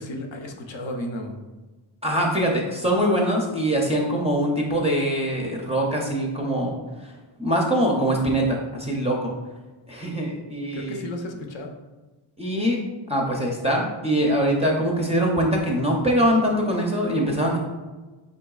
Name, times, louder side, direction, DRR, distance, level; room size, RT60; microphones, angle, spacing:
voice 1, 0.0-1.4 10.7-11.7, left 1 dB, 65° left, 3 dB, 0.7 m, -33 dB
voice 2, 2.0-6.7 7.0-7.1 7.4-9.3 9.9-11.0 12.4-12.8 13.1-17.6, equal, 15° right, -2 dB, 0.4 m, -23 dB
5.3 x 3.8 x 2.3 m, 1.2 s
wide cardioid pair, 160°, 49 cm